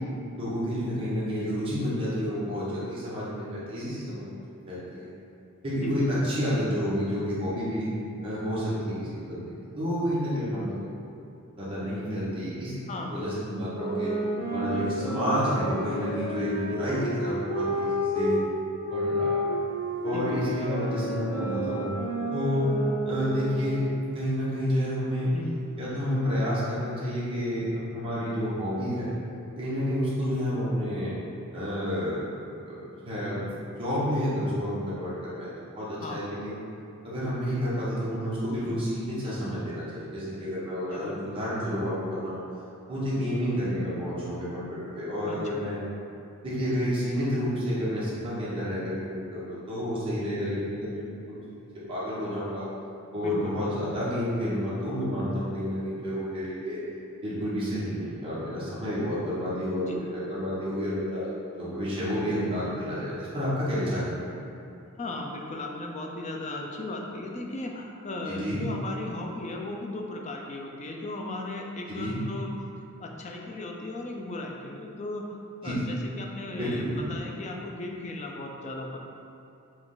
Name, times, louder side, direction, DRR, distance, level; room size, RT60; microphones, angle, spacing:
voice 1, 0.3-5.1 5.6-7.9 8.2-11.1 11.6-14.1 14.5-18.4 18.9-19.5 20.0-21.9 22.3-22.7 23.0-23.8 24.1-25.3 25.8-29.1 29.6-31.1 31.5-32.2 32.7-32.8 33.0-36.6 37.0-42.4 42.9-45.8 46.4-51.4 51.9-52.7 53.1-56.8 57.2-61.3 61.6-64.1 68.3-68.6 71.9-72.1 75.6-75.8 76.6-77.0, equal, 25° right, -10 dB, 1.1 m, -30 dB
voice 2, 12.9-13.5 20.1-20.7 25.3-25.6 30.3-30.4 36.0-36.3 40.9-41.3 45.3-45.6 53.2-53.6 59.9-60.0 65.0-72.5 73.0-79.0, left 2 dB, 30° left, 0 dB, 0.4 m, -36 dB
sound 1, 13.7-18.4 18.8-23.8, equal, 50° left, 1.5 m, -30 dB
4.7 x 2.5 x 3.8 m, 2.7 s
head